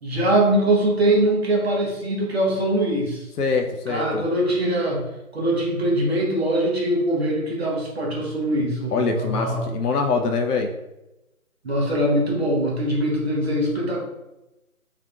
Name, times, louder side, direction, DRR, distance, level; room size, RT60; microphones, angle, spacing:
voice 1, 0.0-3.3 3.9-5.0 5.3-9.7 11.6-14.0, right 1 dB, 45° right, -3 dB, 1.1 m, -22 dB
voice 2, 3.4-4.3 8.9-10.7, left 4 dB, 85° left, 4 dB, 0.6 m, -24 dB
3.7 x 3.5 x 2.3 m, 0.96 s
figure-of-eight pair, 160°, 45 cm